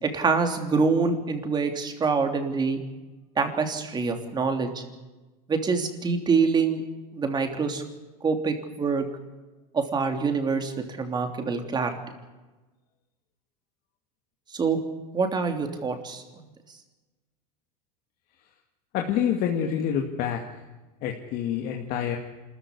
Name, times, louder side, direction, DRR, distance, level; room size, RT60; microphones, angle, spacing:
voice 1, 0.0-2.8 3.4-4.8 5.5-6.8 7.1-7.8 8.2-9.1 9.7-11.9 14.5-14.8 15.1-16.2, right 4 dB, 20° right, 5 dB, 3.2 m, -25 dB
voice 2, 18.9-20.4 21.0-22.2, left 9 dB, 50° left, 2 dB, 2.2 m, -27 dB
26.0 x 14.5 x 9.8 m, 1.2 s
supercardioid pair, 130°, 19 cm